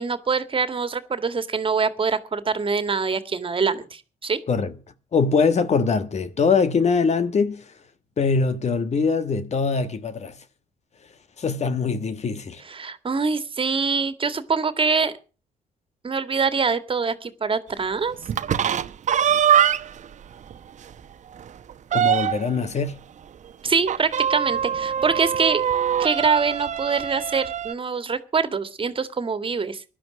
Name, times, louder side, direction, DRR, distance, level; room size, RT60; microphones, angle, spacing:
voice 1, 0.0-4.4 12.6-15.1 16.0-18.2 23.6-25.6 26.0-29.8, right 5 dB, 35° right, 1.9 m, -24 dB
voice 2, 5.1-7.7 8.2-10.4 11.4-12.6 21.9-23.0, left 5 dB, 45° left, 1.5 m, -22 dB
sound 1, 18.2-20.1 20.5-20.6 20.9-21.0 21.4-22.6 23.9-27.7, right 9 dB, 50° right, 1.0 m, -23 dB
16.5 x 11.5 x 6.2 m
hypercardioid pair, 60°, 15 cm